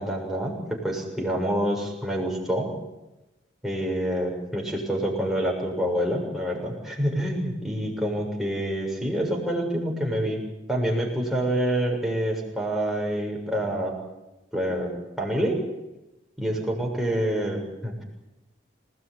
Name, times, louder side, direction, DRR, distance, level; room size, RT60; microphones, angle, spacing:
voice 1, 0.0-2.7 3.6-10.4 10.7-13.9 14.5-14.9 15.2-15.6 16.4-18.0, equal, ahead, -1 dB, 6.8 m, -27 dB
28.0 x 18.5 x 9.8 m, 0.99 s
head